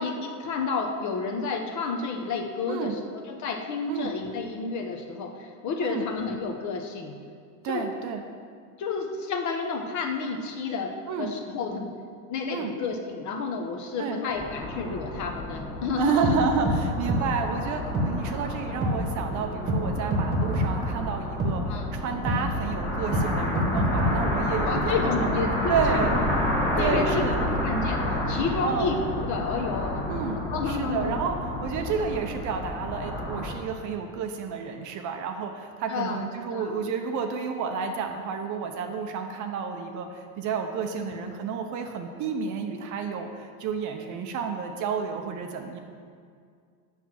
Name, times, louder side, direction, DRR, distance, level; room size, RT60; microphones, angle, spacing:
voice 1, 0.0-3.0 3.3-7.1 7.7-7.9 8.8-11.9 12.3-16.3 21.7-21.9 24.6-26.2 26.8-28.0 28.3-30.0 30.5-31.2 35.9-36.9 41.0-41.2, left 4 dB, 35° left, 4 dB, 0.9 m, -30 dB
voice 2, 7.6-8.2 11.1-11.4 12.5-12.7 14.0-14.2 16.0-25.3 25.7-26.2 26.8-27.5 28.6-28.9 30.1-45.8, right 5 dB, 40° right, 5 dB, 0.7 m, -30 dB
sound 1, 14.3-33.5, left 1 dB, 5° left, 1.8 m, -30 dB
sound 2, 16.2-16.4 16.7-16.8 17.1-17.2 17.9-18.1 18.8-18.9 19.7-19.8 20.1-20.7 21.4-21.5 22.3-22.4 23.1-23.3 23.6-24.1, right 1 dB, 20° right, 1.3 m, -24 dB
7.1 x 6.1 x 5.7 m, 2.2 s
supercardioid pair, 125°, 49 cm